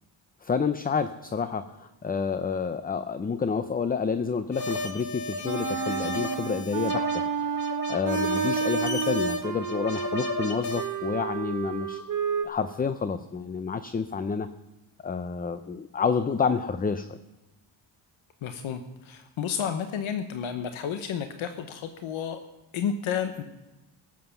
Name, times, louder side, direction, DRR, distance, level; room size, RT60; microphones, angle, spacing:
voice 1, 0.4-12.0 12.4-14.5 15.0-17.2, left 5 dB, 20° left, 12 dB, 0.5 m, -29 dB
sound 1, 4.5-10.9, left 2 dB, 55° left, 2.3 m, -33 dB
Wind instrument woodwind instrument, 5.4-12.5, right 7 dB, 40° right, 1.2 m, -31 dB
voice 2, 18.4-22.4 22.7-23.4, left 7 dB, 85° left, 8 dB, 1.0 m, -31 dB
17.5 x 7.7 x 7.0 m, 1.0 s
cardioid pair, 130°, 47 cm